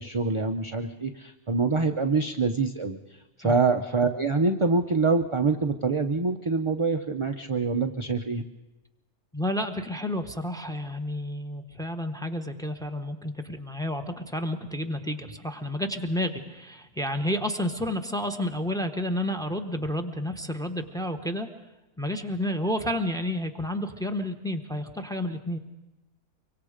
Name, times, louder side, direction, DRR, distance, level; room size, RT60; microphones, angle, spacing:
voice 1, 0.0-3.0 3.4-8.4, right 4 dB, 30° right, 5 dB, 0.5 m, -25 dB
voice 2, 9.3-21.5 22.0-25.6, left 1 dB, 5° left, 7 dB, 1.0 m, -30 dB
24.0 x 24.0 x 5.1 m, 1.0 s
omnidirectional pair, 1.6 m